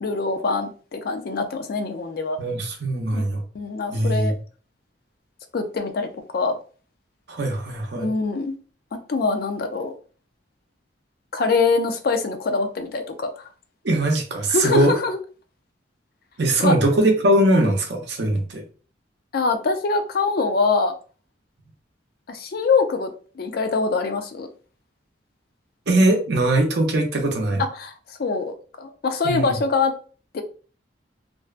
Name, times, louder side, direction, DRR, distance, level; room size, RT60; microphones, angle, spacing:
voice 1, 0.0-2.4 3.1-3.2 3.5-4.4 5.5-6.6 8.0-8.5 9.1-9.9 11.3-13.4 14.5-15.2 16.6-16.7 19.3-20.9 22.3-23.1 23.4-24.5 27.6-27.9 28.2-29.9 30.3-30.4, left 4 dB, 55° left, 7 dB, 0.4 m, -24 dB
voice 2, 2.4-3.4 3.9-4.3 7.3-8.1 13.8-14.9 16.4-18.6 25.9-27.6 29.2-29.6, right 1 dB, 65° right, 3 dB, 0.6 m, -21 dB
2.5 x 2.2 x 2.4 m, 0.39 s
head